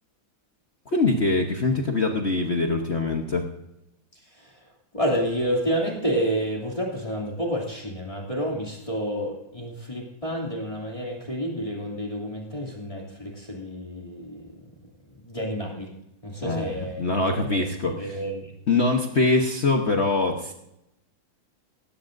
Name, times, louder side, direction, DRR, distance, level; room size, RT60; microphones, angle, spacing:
voice 1, 0.9-3.4 16.4-18.2 18.7-20.5, left 3 dB, 40° left, 2 dB, 1.2 m, -23 dB
voice 2, 4.9-14.5 15.3-15.9 16.2-17.6 18.0-18.5, equal, 15° left, -1 dB, 2.8 m, -29 dB
18.0 x 15.5 x 2.6 m, 0.83 s
omnidirectional pair, 2.1 m